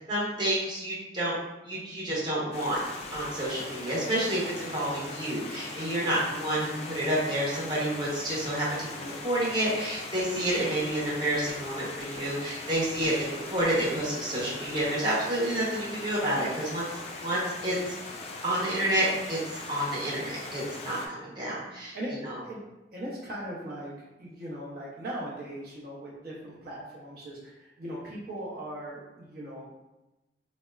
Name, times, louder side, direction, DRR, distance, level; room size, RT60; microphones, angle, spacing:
voice 1, 0.1-1.4 1.6-2.8 3.1-16.8 17.2-17.9 18.4-19.4 19.7-22.0 22.2-22.4, right 1 dB, 25° right, -7 dB, 0.8 m, -29 dB
Stream, 2.5-21.1, left 3 dB, 35° left, 0.3 m, -40 dB
voice 2, 22.9-23.9 24.2-29.8, right 1 dB, 55° right, -5 dB, 0.7 m, -39 dB
4.0 x 2.1 x 2.3 m, 1.0 s
head